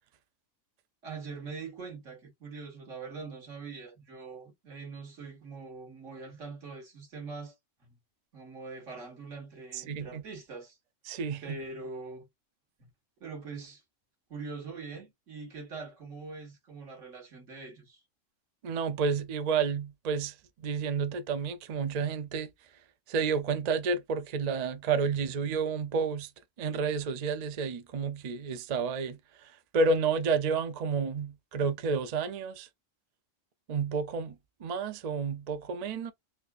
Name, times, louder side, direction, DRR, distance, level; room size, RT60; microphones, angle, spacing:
voice 1, 1.0-7.5 8.3-10.8 11.4-12.2 12.8-12.9 13.2-13.8 14.3-18.0, right 4 dB, 70° right, 2.0 m, -43 dB
voice 2, 9.7-10.2 11.1-11.6 18.6-20.4 20.6-22.5 23.1-26.3 26.6-32.7 33.7-36.1, right 5 dB, 55° right, 0.4 m, -30 dB
4.2 x 2.4 x 2.4 m
omnidirectional pair, 1.3 m